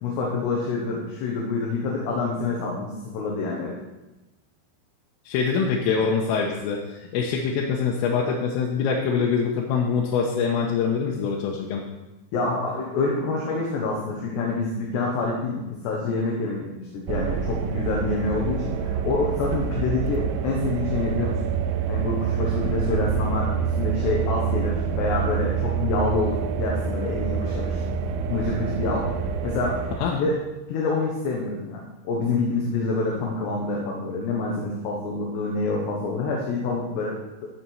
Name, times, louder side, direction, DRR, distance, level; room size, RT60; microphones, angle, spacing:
voice 1, 0.0-3.8 12.3-21.5 21.9-23.5 23.8-27.8 28.3-29.2 29.4-29.8 30.1-30.4 30.7-37.6, left 3 dB, 65° left, -2 dB, 3.3 m, -27 dB
voice 2, 5.3-6.8 7.1-11.8 30.0-30.1, left 6 dB, 90° left, -2 dB, 3.6 m, -24 dB
sound 1, 17.1-30.0, right 7 dB, 85° right, 3.1 m, -27 dB
15.0 x 6.9 x 4.6 m, 1.1 s
omnidirectional pair, 5.8 m